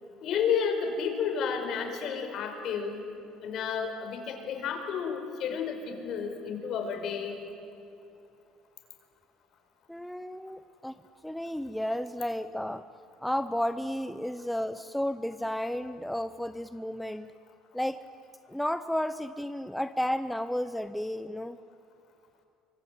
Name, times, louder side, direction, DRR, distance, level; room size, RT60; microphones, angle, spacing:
voice 1, 0.2-3.0 3.4-7.4, left 6 dB, 55° left, 5 dB, 4.7 m, -31 dB
voice 2, 9.9-12.9 13.2-17.3 17.7-18.0 18.5-21.6, equal, 5° left, 11 dB, 0.7 m, -32 dB
25.0 x 24.0 x 9.1 m, 2.7 s
cardioid pair, 120°, 0 cm